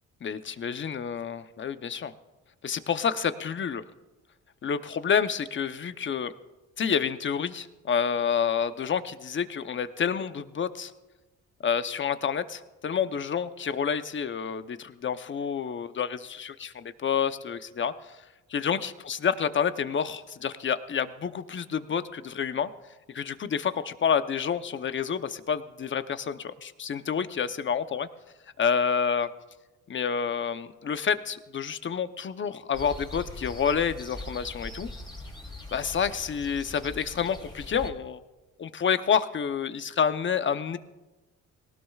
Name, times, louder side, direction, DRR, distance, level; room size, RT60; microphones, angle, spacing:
voice 1, 0.2-2.1 2.6-3.8 4.6-6.3 6.8-10.9 11.6-17.9 18.5-22.7 23.1-28.1 28.6-29.3 29.9-34.9 35.7-38.2 38.6-40.8, left 7 dB, 40° left, 11 dB, 0.8 m, -28 dB
sound 1, 32.7-37.9, left 1 dB, 15° left, 3.3 m, -41 dB
19.0 x 18.0 x 2.4 m, 1.1 s
cardioid pair, 90°, 30 cm